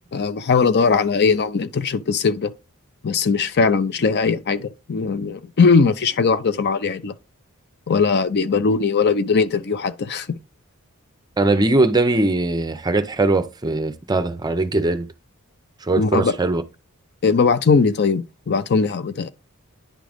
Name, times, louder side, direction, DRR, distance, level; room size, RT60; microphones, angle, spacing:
voice 1, 0.1-2.5 3.0-7.1 7.9-10.4 16.0-16.3 17.2-19.3, left 5 dB, 50° left, 0.5 m, -19 dB
voice 2, 11.4-15.1 15.8-16.6, right 2 dB, 20° right, 0.6 m, -20 dB
10.0 x 3.7 x 3.5 m
head